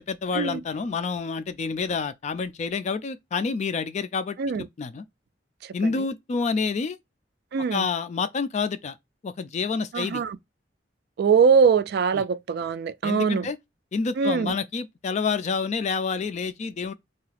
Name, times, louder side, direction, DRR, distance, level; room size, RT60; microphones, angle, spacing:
voice 1, 0.0-4.4 4.8-5.0 5.7-7.0 7.7-9.0 9.2-10.2 12.1-12.2 13.0-13.6 13.9-16.9, left 5 dB, 40° left, 0.3 m, -28 dB
voice 2, 7.5-7.8 9.9-10.4 11.2-13.5 14.2-14.5, right 6 dB, 60° right, 0.3 m, -22 dB
2.8 x 2.3 x 3.2 m
head